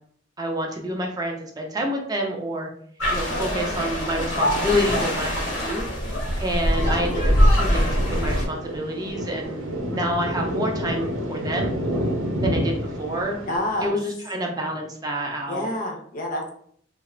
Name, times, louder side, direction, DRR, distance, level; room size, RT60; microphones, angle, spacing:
voice 1, 0.4-2.7 3.1-5.8 6.4-11.7 12.4-13.4 13.8-15.7, equal, 20° right, 1 dB, 0.3 m, -28 dB
sound 1, 3.0-8.5, equal, 70° left, 0.8 m, -22 dB
Thunder, 6.8-13.9, equal, 80° right, 0.6 m, -29 dB
voice 2, 13.5-13.9 15.5-16.5, left 1 dB, 45° left, 2 dB, 0.5 m, -27 dB
2.8 x 2.0 x 2.4 m, 0.63 s
head